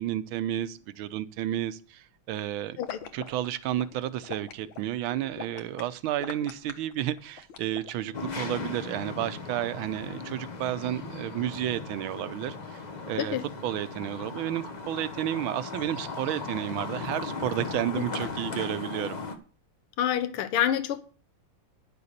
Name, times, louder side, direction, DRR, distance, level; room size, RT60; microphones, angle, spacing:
voice 1, 0.0-2.8 3.1-12.8 13.1-13.4 13.6-19.2, right 12 dB, 75° right, 1.5 m, -31 dB
sound 1, 2.8-8.9, left 7 dB, 65° left, 1.8 m, -42 dB
sound 2, 8.1-19.4, left 4 dB, 35° left, 0.6 m, -37 dB
voice 2, 20.0-21.0, left 10 dB, 80° left, 1.8 m, -27 dB
10.5 x 6.9 x 6.6 m
omnidirectional pair, 2.4 m